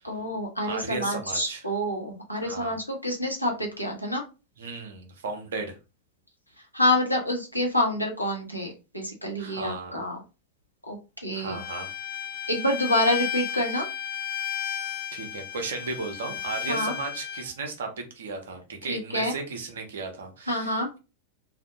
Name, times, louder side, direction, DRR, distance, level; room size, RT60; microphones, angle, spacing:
voice 1, 0.0-4.2 6.7-10.2 10.9-11.0 11.2-11.6 12.5-13.9 16.7-16.9 18.9-19.3 20.5-20.9, left 1 dB, 90° left, 1 dB, 0.7 m, -27 dB
voice 2, 0.6-1.7 2.3-2.8 4.6-5.7 9.4-10.1 11.3-11.9 15.1-21.0, right 4 dB, 60° right, 4 dB, 0.7 m, -35 dB
Bowed string instrument, 11.5-17.4, left 10 dB, 50° left, 0.4 m, -33 dB
2.5 x 2.0 x 2.6 m, 0.30 s
figure-of-eight pair, 90°, 0 cm